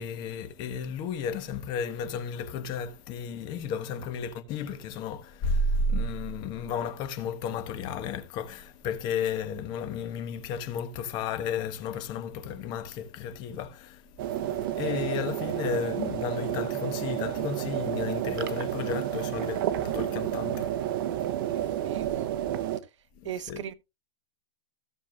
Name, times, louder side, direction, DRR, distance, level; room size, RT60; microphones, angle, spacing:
voice 1, 0.0-22.0 23.2-23.6, left 5 dB, 30° left, 1.3 m, -33 dB
sound 1, 14.2-22.8, right 11 dB, 50° right, 0.9 m, -30 dB
voice 2, 21.5-22.3 23.2-23.7, right 10 dB, 85° right, 1.0 m, -38 dB
16.5 x 7.0 x 2.5 m
supercardioid pair, 160°, 15 cm